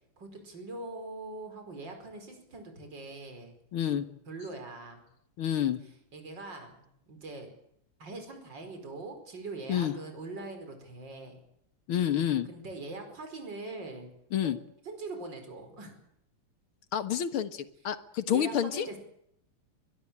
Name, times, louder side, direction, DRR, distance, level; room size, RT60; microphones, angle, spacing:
voice 1, 0.2-3.5 3.8-5.0 6.1-7.5 8.0-11.4 12.4-14.1 14.4-14.5 14.8-16.0 18.3-19.0, right 3 dB, 55° right, 6 dB, 5.7 m, -42 dB
voice 2, 3.7-4.0 5.4-5.8 9.7-9.9 11.9-12.5 14.3-14.6 16.9-18.9, left 10 dB, 70° left, 12 dB, 2.3 m, -28 dB
23.0 x 22.0 x 8.8 m, 0.73 s
omnidirectional pair, 2.4 m